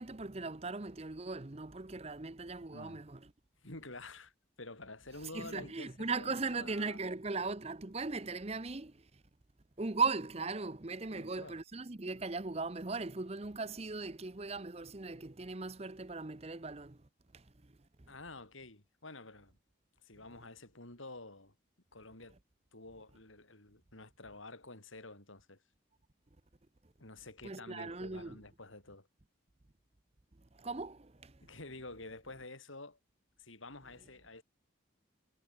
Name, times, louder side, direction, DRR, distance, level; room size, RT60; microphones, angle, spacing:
voice 1, 0.0-3.3 5.3-9.2 9.8-17.1 17.3-17.7 27.4-28.4 30.5-31.5, right 4 dB, 30° right, 0.8 m, -38 dB
voice 2, 2.7-3.0 3.6-4.3 4.6-7.0 11.1-11.6 18.1-19.6 20.0-21.5 21.9-22.4 22.7-25.6 27.0-29.1 31.4-33.0 33.4-34.4, left 2 dB, 80° left, 6.2 m, -49 dB
head